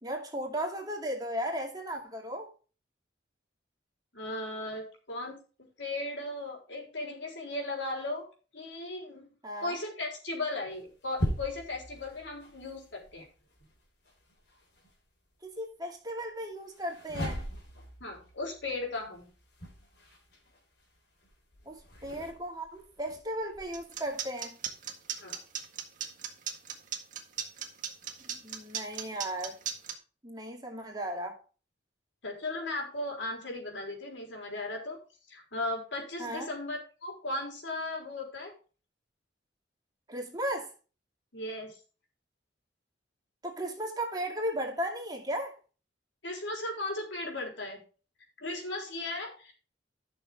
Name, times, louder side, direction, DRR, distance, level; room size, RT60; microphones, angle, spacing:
voice 1, 0.0-2.5 9.4-9.8 15.4-17.5 21.7-24.6 28.3-29.6 30.2-31.4 36.2-36.5 40.1-40.7 43.4-45.5, equal, 20° right, 2.3 m, -36 dB
voice 2, 4.1-8.3 8.5-9.3 9.6-13.3 18.0-19.3 25.2-25.4 32.2-35.0 35.3-38.5 41.3-41.8 46.2-47.8 48.4-49.5, left 2 dB, 80° left, 4.1 m, -36 dB
sound 1, 10.7-15.0 16.7-24.2, equal, 60° left, 3.7 m, -41 dB
sound 2, 23.7-29.9, right 8 dB, 45° right, 1.7 m, -36 dB
12.5 x 6.6 x 3.6 m
head